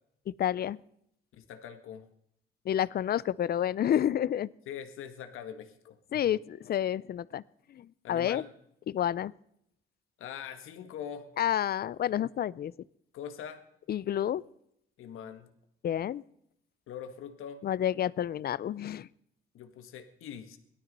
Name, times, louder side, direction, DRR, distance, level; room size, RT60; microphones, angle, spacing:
voice 1, 0.4-0.8 2.7-4.5 6.1-7.4 7.7-8.4 8.9-9.3 11.4-12.7 13.9-14.4 15.8-16.2 17.6-19.1, left 10 dB, 50° left, 20 dB, 0.5 m, -29 dB
voice 2, 1.3-2.1 4.7-6.4 8.0-8.5 10.2-11.3 13.1-13.6 15.0-15.5 16.9-17.6 19.5-20.6, left 8 dB, 80° left, 7 dB, 1.7 m, -43 dB
17.5 x 12.0 x 5.4 m, 0.73 s
cardioid pair, 105°, 21 cm